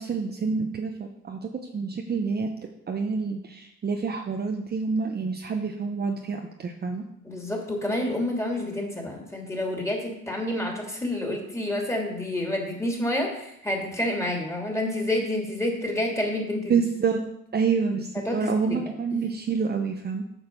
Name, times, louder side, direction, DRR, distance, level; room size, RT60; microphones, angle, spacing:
voice 1, 0.0-7.0 16.7-17.2 17.5-20.2, right 5 dB, 30° right, 3 dB, 0.9 m, -28 dB
voice 2, 7.2-16.8 18.3-19.3, left 1 dB, 10° left, 0 dB, 2.8 m, -29 dB
9.0 x 6.5 x 5.4 m, 0.78 s
cardioid pair, 105°, 30 cm